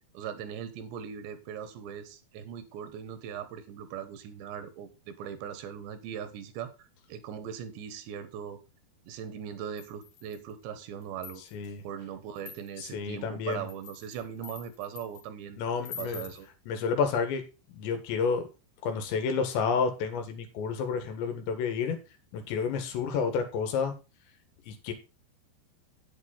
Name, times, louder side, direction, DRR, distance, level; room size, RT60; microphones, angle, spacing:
voice 1, 0.1-8.6 9.1-11.4 11.8-15.6 16.0-16.5, right 8 dB, 85° right, 11 dB, 3.4 m, -40 dB
sound 1, 9.8-10.5 11.0-11.7 12.4-12.9 13.5-15.2 15.8-16.4, left 7 dB, 60° left, 3.9 m, -45 dB
voice 2, 11.5-11.8 12.8-13.7 15.6-16.3 16.7-17.4 17.7-18.4 18.8-22.0 22.3-23.9 24.7-24.9, left 5 dB, 90° left, 7 dB, 4.0 m, -30 dB
9.1 x 8.8 x 4.1 m, 0.29 s
omnidirectional pair, 5.0 m